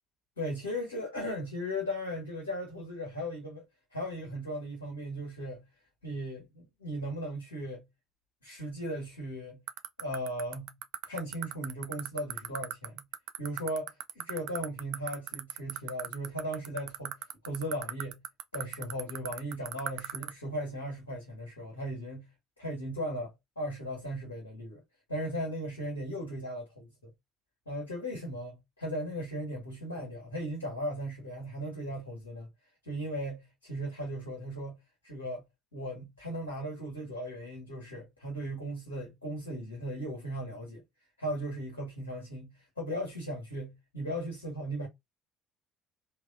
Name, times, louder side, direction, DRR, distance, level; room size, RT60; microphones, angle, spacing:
voice 1, 0.4-3.6 3.9-5.6 6.0-7.8 8.4-9.6 10.0-10.7 11.0-13.0 13.4-17.1 17.4-18.2 18.5-22.3 22.6-24.8 25.1-27.1 27.6-32.5 32.8-34.8 35.0-35.4 35.7-40.8 41.2-44.9, equal, 85° left, 1.6 m, -37 dB
sound 1, 9.7-20.3, right 16 dB, 60° right, 0.4 m, -34 dB
4.1 x 2.7 x 2.6 m
figure-of-eight pair, 55°, 0 cm